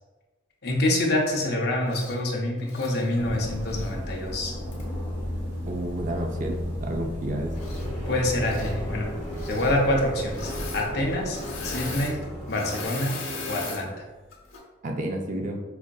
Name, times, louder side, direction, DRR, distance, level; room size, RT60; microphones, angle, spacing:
voice 1, 0.6-4.5 7.8-9.1 9.5-11.4 11.6-12.2 12.5-13.2 13.5-13.9, left 1 dB, 55° left, 0 dB, 0.6 m, -26 dB
Engine / Mechanisms, 1.9-2.2 2.6-3.9 4.7-4.8 7.5-8.1 8.3-8.7 9.3-9.8 10.3-10.9 11.1-13.8 14.3-14.6, left 4 dB, 80° left, 0.8 m, -38 dB
aeroplane passing by, 3.2-12.8, equal, 60° right, 1.0 m, -34 dB
voice 2, 5.7-7.5 14.8-15.6, right 1 dB, 40° right, 2 dB, 0.4 m, -30 dB
sound 1, 7.5-13.6, right 1 dB, ahead, 1.4 m, -38 dB
4.9 x 2.5 x 2.3 m, 1.2 s
head